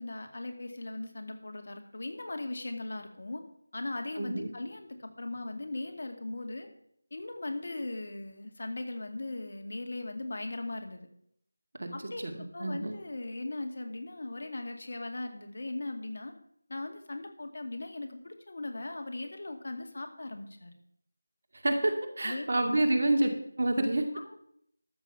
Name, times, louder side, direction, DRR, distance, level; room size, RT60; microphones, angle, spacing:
voice 1, 0.0-3.4 3.7-6.7 7.1-11.1 11.9-16.3 16.7-20.7 22.2-22.7 24.1-24.4, left 2 dB, 55° left, 5 dB, 2.2 m, -39 dB
voice 2, 4.2-4.5 11.8-11.9 12.2-12.9 21.6-23.3 23.6-24.0, right 1 dB, 55° right, 4 dB, 2.3 m, -28 dB
13.0 x 7.3 x 6.0 m, 0.70 s
figure-of-eight pair, 170°, 0 cm